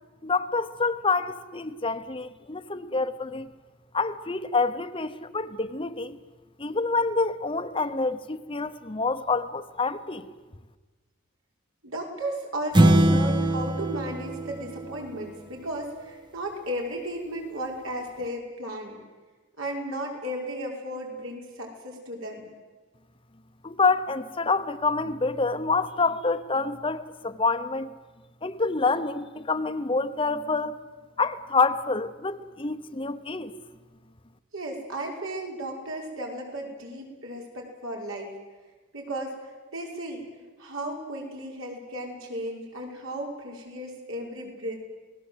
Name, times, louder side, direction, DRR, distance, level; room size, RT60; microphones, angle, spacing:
voice 1, 0.2-3.5 3.9-6.2 6.6-10.3 23.6-27.9 28.4-30.8 31.2-33.5, left 4 dB, 25° left, 0.9 m, -27 dB
voice 2, 11.8-19.0 19.6-22.5 34.5-38.3 38.9-39.3 39.7-40.3 40.6-44.8, right 1 dB, 75° right, 5.8 m, -34 dB
sound 1, 12.7-15.4, right 1 dB, 20° right, 0.9 m, -22 dB
28.0 x 19.5 x 8.1 m
head